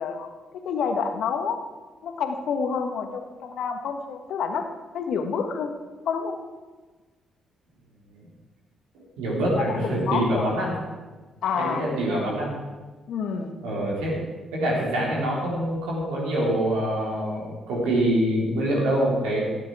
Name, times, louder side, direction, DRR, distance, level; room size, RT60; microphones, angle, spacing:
voice 1, 0.0-1.6 2.0-4.7 4.9-5.8 6.0-6.4 9.6-10.4 11.4-12.3 13.1-13.6, left 6 dB, 70° left, 6 dB, 1.3 m, -28 dB
voice 2, 9.2-10.8 11.5-12.6 13.6-14.2 14.5-19.4, right 1 dB, 80° right, -4 dB, 3.6 m, -25 dB
17.0 x 8.6 x 4.8 m, 1.3 s
hypercardioid pair, 45°, 0 cm